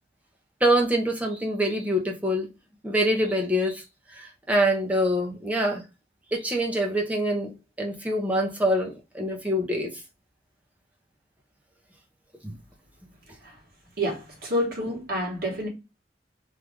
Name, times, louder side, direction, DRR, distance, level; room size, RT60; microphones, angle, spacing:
voice 1, 0.6-2.5 2.8-3.8 4.1-5.8 6.3-7.5 7.8-9.9 12.4-12.5, equal, 10° right, 0.8 m, -25 dB
voice 2, 14.0-15.7, equal, 60° right, 1.6 m, -28 dB
3.2 x 2.5 x 3.5 m
head